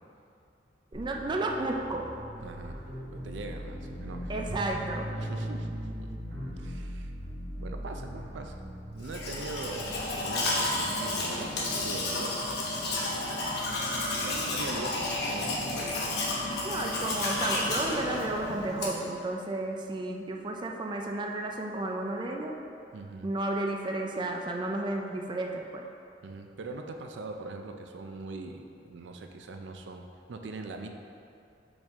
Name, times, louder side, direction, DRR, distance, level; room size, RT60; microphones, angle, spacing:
voice 1, 0.9-2.1 4.3-5.1 16.6-22.6 23.2-25.9, right 2 dB, 25° right, 1 dB, 0.4 m, -32 dB
sound 1, 0.9-10.0, equal, 55° right, 1.1 m, -39 dB
voice 2, 2.4-2.9 3.1-4.3 5.2-5.7 6.0-6.1 6.6-7.1 7.6-8.6 8.9-11.5 11.8-12.4 14.2-15.6 22.9-23.3 26.2-30.9, right 3 dB, 85° right, 4 dB, 0.5 m, -41 dB
Domestic sounds home sounds, 9.0-19.1, left 2 dB, 65° left, 0.9 m, -31 dB
5.2 x 5.2 x 3.5 m, 2.6 s
head